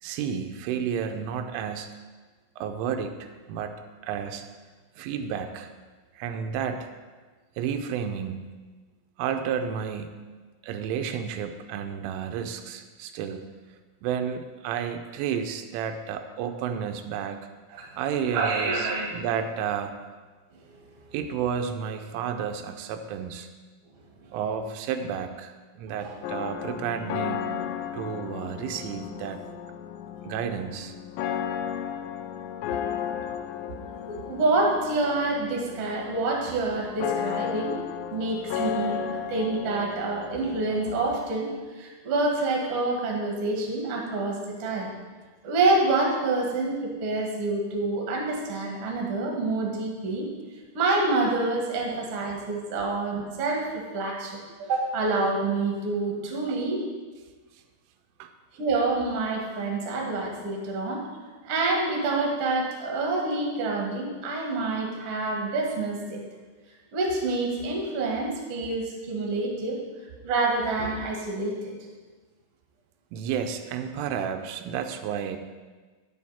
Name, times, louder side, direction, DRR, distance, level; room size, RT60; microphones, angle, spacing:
voice 1, 0.0-2.0 2.6-4.4 5.0-5.7 6.1-6.9 7.6-8.4 9.2-10.2 10.6-13.5 14.0-17.4 18.0-19.9 21.1-23.5 24.3-27.5 27.9-29.4 30.2-30.9 56.5-56.6 58.2-58.3 73.1-75.4, right 7 dB, 90° right, 6 dB, 3.2 m, -31 dB
voice 2, 18.3-19.1 20.5-20.7 26.0-26.2 34.1-37.8 38.1-44.9 45.4-50.3 50.7-56.8 58.5-61.0 61.4-66.2 66.9-69.8 70.2-71.7, right 3 dB, 55° right, -1 dB, 1.8 m, -27 dB
sound 1, 26.2-41.2, left 9 dB, 85° left, 2.6 m, -34 dB
10.0 x 8.7 x 4.2 m, 1.4 s
omnidirectional pair, 5.5 m